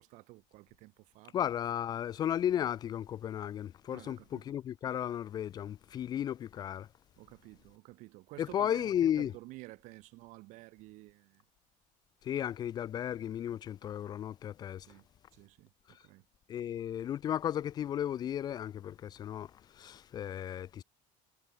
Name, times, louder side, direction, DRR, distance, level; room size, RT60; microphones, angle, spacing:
voice 1, 0.0-1.5 3.9-4.5 7.2-11.4 14.9-15.1 15.3-16.2, right 21 dB, 55° right, 4.1 m, -52 dB
voice 2, 1.3-6.9 8.4-9.3 12.2-14.9 16.5-19.5 19.7-20.8, left 10 dB, 25° left, 0.6 m, -34 dB
cardioid pair, 175°, 16 cm